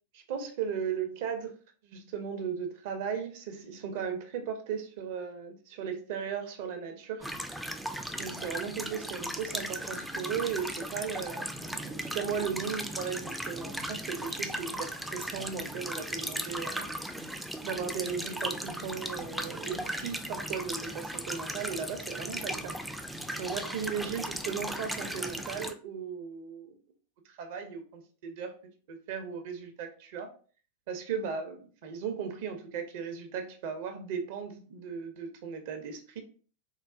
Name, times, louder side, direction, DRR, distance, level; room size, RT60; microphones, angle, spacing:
voice 1, 0.1-1.5 1.8-7.3 8.2-16.9 17.3-22.8 23.3-26.7 27.2-28.5 28.9-30.3 30.9-36.2, right 7 dB, 50° right, 6 dB, 0.6 m, -36 dB
sound 1, 7.2-25.7, equal, ahead, 0.3 m, -37 dB
3.8 x 2.0 x 2.4 m, 0.41 s
figure-of-eight pair, 90°, 0 cm